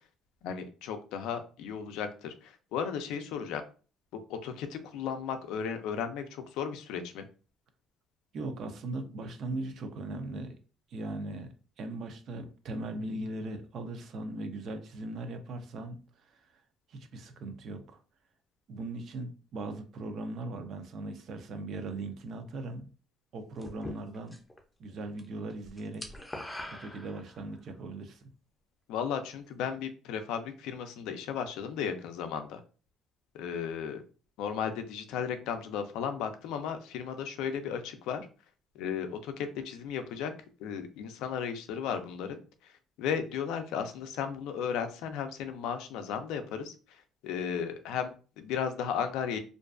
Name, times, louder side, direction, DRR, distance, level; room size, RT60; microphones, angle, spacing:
voice 1, 0.4-3.6 4.3-7.3 28.9-32.6 33.3-34.0 34.4-38.3 38.8-40.3 40.6-42.7 43.0-46.7 47.2-49.4, left 7 dB, 90° left, 8 dB, 0.3 m, -35 dB
voice 2, 8.3-10.5 10.9-16.4 16.9-18.0 18.7-22.9 23.3-24.4 24.8-26.1 26.7-28.3, right 2 dB, 60° right, 8 dB, 0.4 m, -39 dB
sound 1, 23.6-24.6 24.9-25.2 25.5-27.6, left 1 dB, 10° left, 0.5 m, -42 dB
2.5 x 2.2 x 2.3 m, 0.37 s
cardioid pair, 115°, 0 cm